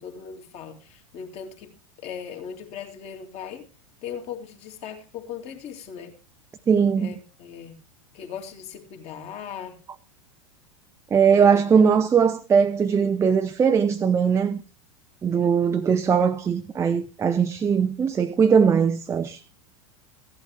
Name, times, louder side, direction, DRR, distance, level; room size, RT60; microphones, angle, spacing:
voice 1, 0.0-1.7 2.0-3.6 4.0-6.1 7.0-7.8 8.1-9.8 11.3-11.6 15.3-15.7, left 7 dB, 35° left, 2.5 m, -38 dB
voice 2, 6.7-7.1 11.1-14.6 15.2-19.4, right 6 dB, 15° right, 0.6 m, -20 dB
15.5 x 11.5 x 3.2 m
figure-of-eight pair, 85°, 18 cm